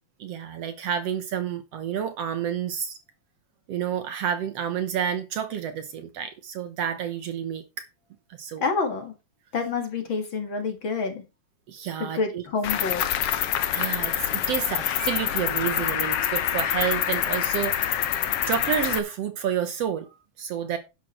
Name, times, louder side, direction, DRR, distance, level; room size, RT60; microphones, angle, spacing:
voice 1, 0.2-3.0 3.7-7.9 8.4-8.6 11.7-12.4 13.7-18.2 18.4-20.1 20.4-20.8, right 9 dB, 65° right, 1.9 m, -29 dB
voice 2, 8.6-9.1 9.5-11.2 12.0-13.1, left 4 dB, 45° left, 2.4 m, -28 dB
Cricket, 12.6-19.0, left 10 dB, 65° left, 1.8 m, -26 dB
11.0 x 7.7 x 4.3 m
omnidirectional pair, 3.4 m